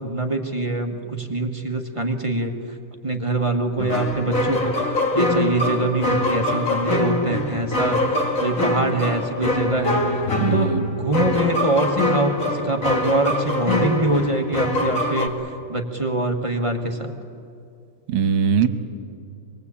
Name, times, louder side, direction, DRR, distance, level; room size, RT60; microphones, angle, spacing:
voice 1, 0.0-2.5 3.0-4.7 5.1-10.0 10.5-17.1, right 2 dB, 20° right, 3 dB, 1.2 m, -24 dB
sound 1, 3.8-15.3, left 1 dB, 35° left, 2.5 m, -23 dB
voice 2, 10.4-10.8 18.1-18.7, right 7 dB, 70° right, 9 dB, 1.9 m, -20 dB
27.0 x 21.0 x 8.5 m, 2.4 s
omnidirectional pair, 2.4 m